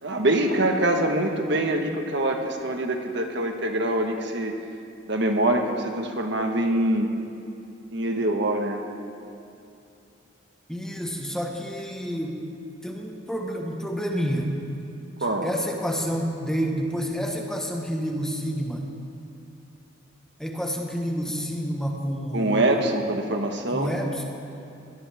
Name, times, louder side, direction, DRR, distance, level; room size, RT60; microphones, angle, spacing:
voice 1, 0.0-4.5 5.1-7.1 7.9-8.8 15.2-15.5 22.3-23.9, right 1 dB, 60° right, 3 dB, 1.5 m, -24 dB
voice 2, 10.7-12.4 12.8-14.5 15.4-18.9 20.4-23.0 23.7-24.2, equal, 5° left, 0 dB, 1.4 m, -29 dB
21.0 x 18.0 x 3.6 m, 2.6 s
head